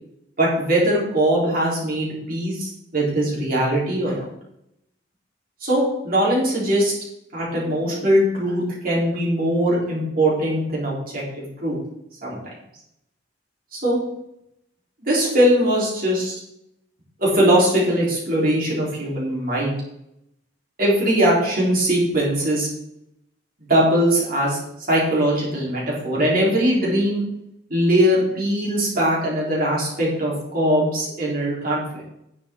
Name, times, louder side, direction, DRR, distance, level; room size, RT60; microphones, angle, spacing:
voice 1, 0.4-4.2 5.6-6.9 7.3-11.8 12.2-12.5 13.7-14.0 15.0-16.4 17.2-19.8 20.8-22.7 23.7-24.6 24.9-27.2 27.7-32.0, right 1 dB, 50° right, -5 dB, 4.2 m, -21 dB
10.5 x 9.7 x 3.9 m, 0.80 s
head